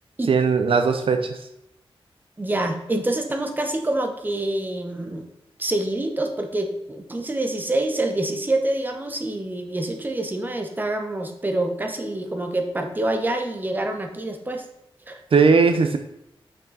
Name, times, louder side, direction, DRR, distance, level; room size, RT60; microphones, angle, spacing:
voice 1, 0.3-1.4 15.3-16.0, right 5 dB, 65° right, 7 dB, 0.6 m, -18 dB
voice 2, 2.4-5.2 5.6-14.6 15.1-15.2, right 1 dB, 20° right, 4 dB, 1.0 m, -26 dB
6.6 x 6.1 x 4.0 m, 0.85 s
wide cardioid pair, 135°, 10 cm